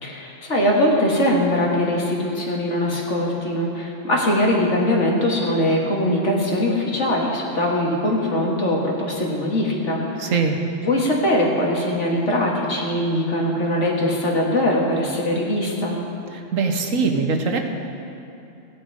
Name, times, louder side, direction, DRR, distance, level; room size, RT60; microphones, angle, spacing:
voice 1, 0.0-10.3 10.8-16.0, left 1 dB, 65° left, -2 dB, 2.1 m, -21 dB
voice 2, 10.2-10.6 16.3-17.6, right 4 dB, 80° right, 4 dB, 1.4 m, -22 dB
16.0 x 10.0 x 4.8 m, 2.7 s
omnidirectional pair, 1.3 m